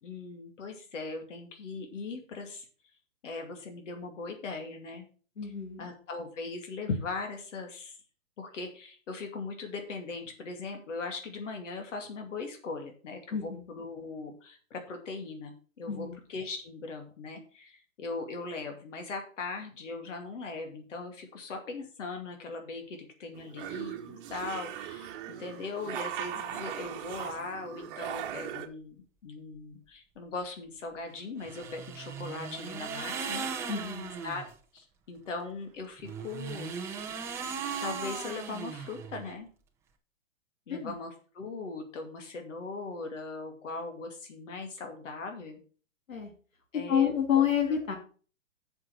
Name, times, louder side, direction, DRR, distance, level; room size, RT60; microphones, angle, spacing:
voice 1, 0.0-2.7 3.2-5.1 5.4-5.5 5.8-8.0 8.4-33.5 34.2-34.4 34.7-36.8 37.8-39.5 40.7-45.6 46.7-47.8, left 3 dB, 65° left, 4 dB, 2.6 m, -39 dB
voice 2, 5.4-5.9 13.3-13.6 15.9-16.2 33.7-34.1 40.7-40.9 46.1-46.3 46.7-48.0, left 8 dB, 85° left, 4 dB, 2.5 m, -29 dB
sound 1, 23.3-28.7, right 10 dB, 40° right, 1.2 m, -39 dB
sound 2, 31.4-34.5 36.0-39.3, right 6 dB, 5° right, 0.5 m, -38 dB
7.6 x 6.2 x 6.1 m, 0.40 s
hypercardioid pair, 140°, 39 cm